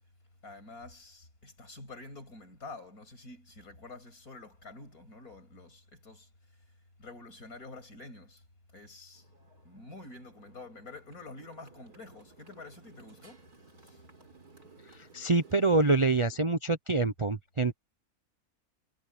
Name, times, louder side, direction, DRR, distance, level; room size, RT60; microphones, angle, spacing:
voice 1, 0.4-6.3 7.0-8.4 8.7-9.3 9.6-13.5 13.8-14.0, left 2 dB, 75° left, 7.5 m, -48 dB
Motorcycle, 9.1-16.4, right 4 dB, 85° right, 5.2 m, -58 dB
voice 2, 14.9-17.7, right 3 dB, 30° right, 0.6 m, -26 dB
omnidirectional pair, 1.6 m